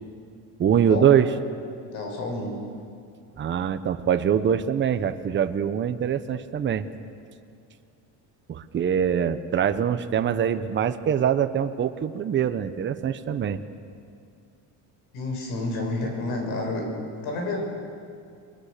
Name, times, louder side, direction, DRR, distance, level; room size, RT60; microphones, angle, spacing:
voice 1, 0.6-1.3 3.4-6.9 8.5-13.6, right 8 dB, 30° right, 9 dB, 1.0 m, -23 dB
voice 2, 1.9-2.5 15.1-16.9 17.2-17.6, left 2 dB, 80° left, 0 dB, 6.7 m, -29 dB
30.0 x 21.5 x 6.8 m, 2.4 s
cardioid pair, 145°, 38 cm